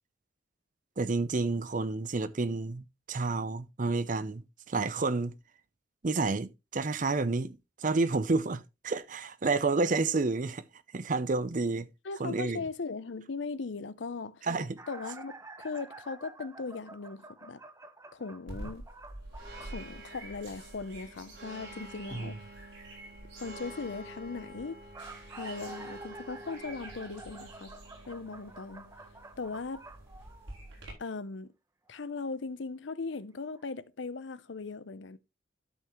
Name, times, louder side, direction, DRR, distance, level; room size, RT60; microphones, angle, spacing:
voice 1, 1.0-5.3 6.0-10.6 10.9-11.9 12.2-12.6 14.4-14.8 22.1-22.3, right 3 dB, 40° right, 0.6 m, -30 dB
voice 2, 12.0-14.5 14.9-17.6 18.1-18.8 19.6-22.4 23.4-24.8 25.4-27.7 28.1-28.9 29.4-29.8 31.0-31.5 31.9-35.2, left 4 dB, 70° left, 0.6 m, -38 dB
sound 1, 14.8-19.8 24.6-30.8 31.9-32.0 33.1-33.2 33.6-33.7, right 2 dB, 15° right, 0.8 m, -49 dB
sound 2, 18.5-30.9, right 1 dB, 85° right, 5.2 m, -46 dB
12.0 x 5.8 x 3.0 m
head